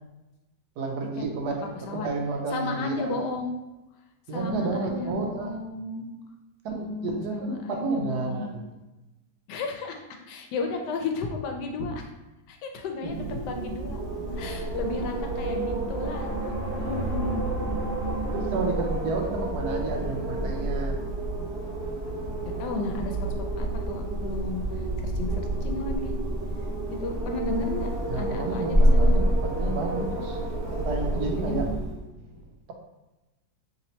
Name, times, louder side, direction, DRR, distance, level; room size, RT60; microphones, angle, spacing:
voice 1, 0.8-3.3 4.3-5.6 6.6-8.7 13.0-13.1 18.3-21.0 28.1-30.4 30.7-31.9 32.2-32.7, right 3 dB, 75° right, 2 dB, 1.1 m, -31 dB
voice 2, 2.5-3.5 4.3-6.1 6.7-8.5 9.5-12.1 12.5-14.0 14.3-16.3 16.7-18.3 22.6-23.2 23.6-24.6 25.0-26.1 26.9-27.9 28.2-29.1 31.3-31.8, left 3 dB, 85° left, 3 dB, 1.2 m, -33 dB
Wind, 13.0-32.0, right 1 dB, 45° right, 0.8 m, -28 dB
3.2 x 2.8 x 4.1 m, 1.0 s
omnidirectional pair, 1.8 m